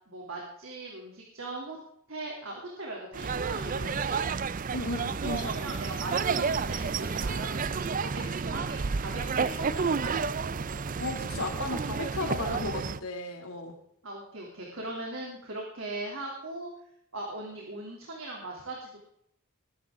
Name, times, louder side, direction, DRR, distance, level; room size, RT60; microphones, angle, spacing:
voice 1, 0.1-1.8 2.1-4.3 5.2-10.2 14.0-16.7 17.1-19.0, right 2 dB, 70° right, -2 dB, 3.0 m, -39 dB
sound 1, 3.1-13.0, right 5 dB, 40° right, 0.5 m, -31 dB
voice 2, 4.7-5.6 11.0-13.7, left 2 dB, 85° left, 3 dB, 2.7 m, -34 dB
20.0 x 11.5 x 3.7 m, 0.71 s
head